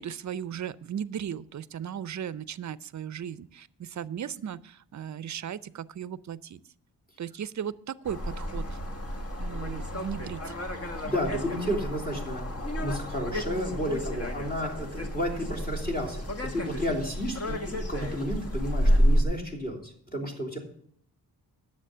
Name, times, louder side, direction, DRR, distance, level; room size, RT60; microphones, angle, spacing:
voice 1, 0.0-6.6 7.2-8.8 9.4-10.5, right 9 dB, 50° right, 18 dB, 0.5 m, -36 dB
sound 1, 8.0-19.2, equal, 40° left, 1.7 m, -30 dB
voice 2, 11.0-16.3 16.5-20.6, equal, 25° left, 2 dB, 3.2 m, -32 dB
10.0 x 7.3 x 6.7 m, 0.65 s
cardioid pair, 90°, 38 cm